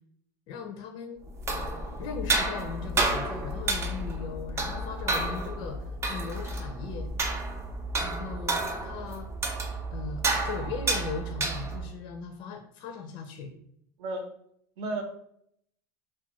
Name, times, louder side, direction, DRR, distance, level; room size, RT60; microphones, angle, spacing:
voice 1, 0.5-1.3 2.0-7.1 8.0-9.3 9.9-13.5, left 5 dB, 55° left, 3 dB, 0.4 m, -38 dB
sound 1, 1.3-12.0, right 2 dB, 30° right, 0.4 m, -31 dB
voice 2, 8.2-8.4 14.0-14.3 14.8-15.0, right 2 dB, 70° right, 4 dB, 0.7 m, -34 dB
2.3 x 2.2 x 2.9 m, 0.69 s
supercardioid pair, 110°, 10 cm